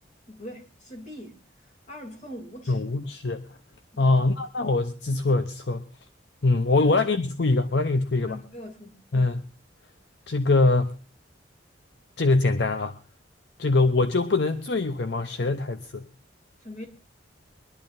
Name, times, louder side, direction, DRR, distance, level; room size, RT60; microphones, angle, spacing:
voice 1, 0.3-1.4 1.9-2.8 3.9-4.2 6.8-6.9 8.3-9.0 16.6-16.9, equal, 35° left, 2.6 m, -41 dB
voice 2, 2.7-3.5 4.0-5.8 6.4-8.4 9.1-9.4 10.3-11.0 12.2-12.9 13.6-16.1, left 3 dB, 60° left, 0.7 m, -23 dB
24.0 x 11.0 x 2.5 m
head